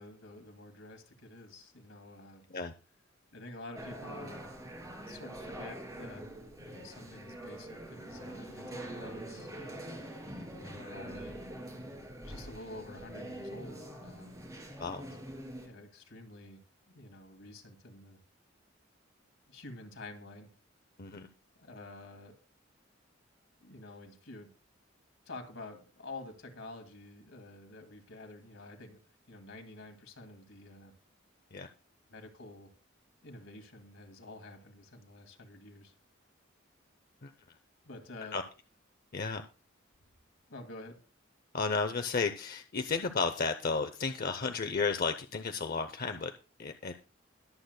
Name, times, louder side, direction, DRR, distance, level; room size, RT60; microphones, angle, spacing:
voice 1, 0.0-2.4 3.3-4.4 5.1-6.3 6.6-9.9 10.6-11.4 12.2-14.4 15.6-16.6 16.9-18.2 19.5-20.5 21.6-22.4 23.6-24.5 25.3-29.0 29.3-30.9 32.1-32.7 33.2-35.9 37.8-38.4 40.5-41.0, left 2 dB, 75° left, 4 dB, 2.3 m, -49 dB
sound 1, 3.8-15.7, right 1 dB, 15° right, 3.1 m, -44 dB
voice 2, 41.5-46.3 46.6-46.9, left 4 dB, 45° left, 8 dB, 0.6 m, -33 dB
21.5 x 8.0 x 2.2 m, 0.35 s
head